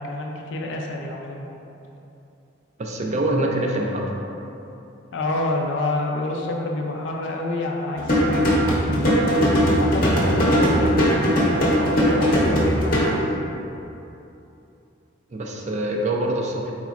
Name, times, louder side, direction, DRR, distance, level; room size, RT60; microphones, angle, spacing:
voice 1, 0.0-1.5 5.1-13.2, left 2 dB, 65° left, 0 dB, 0.5 m, -28 dB
voice 2, 2.8-4.1 15.3-16.7, right 1 dB, 35° right, 0 dB, 0.4 m, -24 dB
sound 1, 8.0-13.1, equal, 45° left, 0.9 m, -19 dB
4.2 x 4.0 x 2.4 m, 2.8 s
head